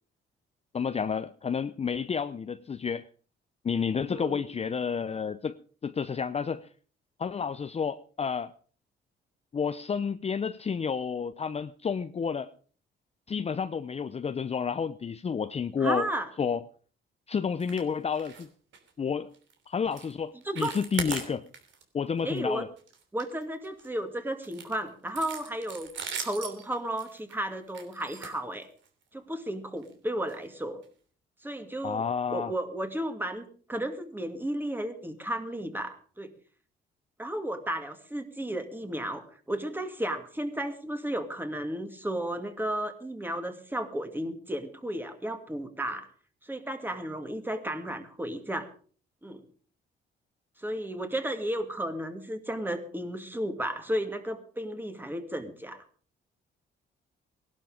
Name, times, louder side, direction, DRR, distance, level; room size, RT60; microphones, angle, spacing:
voice 1, 0.7-3.1 3.6-5.6 5.8-6.7 7.2-8.5 9.5-12.5 13.3-16.1 16.4-16.6 17.3-18.5 19.0-19.3 19.7-21.5 21.9-22.7 31.8-32.5, left 6 dB, 30° left, 0.6 m, -30 dB
voice 2, 4.1-4.4 15.8-16.3 20.5-20.8 22.2-22.6 23.1-25.9 26.2-28.7 29.1-30.8 31.4-32.0 32.3-36.3 37.2-46.1 46.4-48.7 49.2-49.4 50.6-55.8, right 1 dB, 10° right, 2.3 m, -33 dB
sound 1, 17.6-17.9 18.1-18.5 18.7-18.9 19.3-19.5 19.9-20.1 20.4-21.8 22.2-22.4 22.8-23.9 24.4-29.0 29.8-29.9 30.3-30.4 30.8-30.9, right 6 dB, 70° right, 3.1 m, -40 dB
17.5 x 11.5 x 5.0 m
cardioid pair, 90°, 20 cm